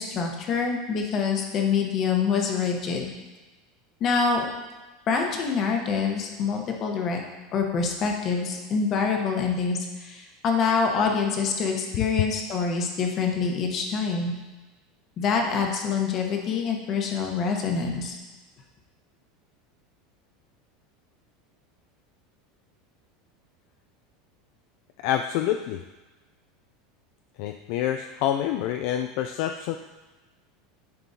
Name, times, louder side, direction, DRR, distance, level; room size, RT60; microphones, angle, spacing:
voice 1, 0.0-3.1 4.0-4.5 5.1-7.2 7.5-14.3 15.2-18.2, left 5 dB, 35° left, 2 dB, 1.0 m, -26 dB
voice 2, 25.0-25.8 27.4-29.8, left 11 dB, 55° left, 6 dB, 0.3 m, -27 dB
10.5 x 4.5 x 2.8 m, 1.2 s
supercardioid pair, 160°, 0 cm